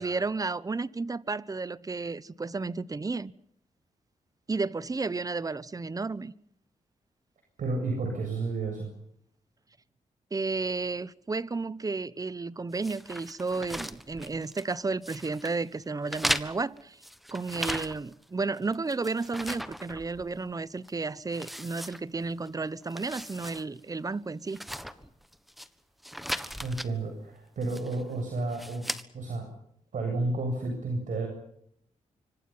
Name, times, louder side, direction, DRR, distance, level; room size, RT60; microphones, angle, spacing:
voice 1, 0.0-3.3 4.5-6.3 10.3-17.0 17.3-24.6, right 3 dB, 25° right, 1.0 m, -32 dB
voice 2, 7.6-8.9 26.6-28.8 29.1-29.5 29.9-31.3, right 2 dB, 70° right, 7.7 m, -31 dB
sound 1, 12.8-14.7 15.0-15.6 16.1-18.2 18.6-20.5 20.8-20.9 21.3-22.5 22.8-23.6 23.9-24.0 24.5-25.7 26.0-26.9 27.6-28.0 28.5-29.0, equal, ahead, 1.5 m, -37 dB
26.0 x 25.5 x 5.8 m
cardioid pair, 90°, 14 cm